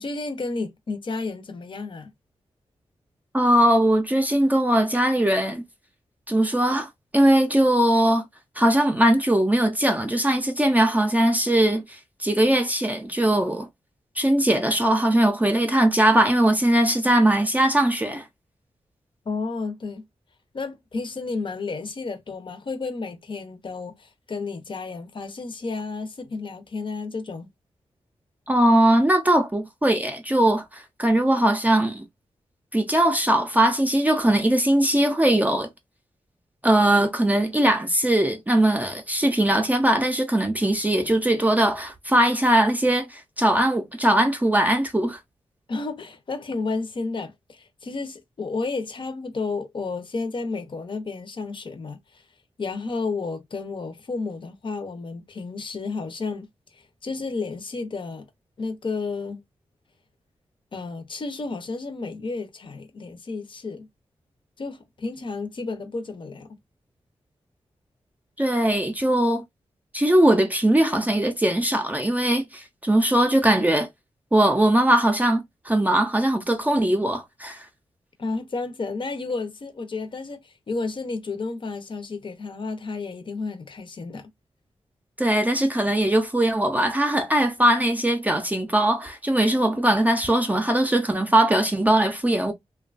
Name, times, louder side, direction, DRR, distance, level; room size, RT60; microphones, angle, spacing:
voice 1, 0.0-2.1 19.2-20.0 20.5-27.5 45.7-52.2 52.6-56.5 56.7-58.3 58.6-59.4 60.7-63.9 64.6-66.5 78.2-84.3, left 3 dB, 50° left, 0.7 m, -32 dB
voice 2, 3.3-5.6 6.3-8.2 8.6-13.7 14.2-18.3 28.5-32.0 32.7-35.7 36.6-45.2 68.4-69.4 69.9-73.9 74.3-77.6 85.2-92.5, right 1 dB, 15° right, 0.5 m, -20 dB
2.9 x 2.2 x 2.4 m
wide cardioid pair, 105°, 11 cm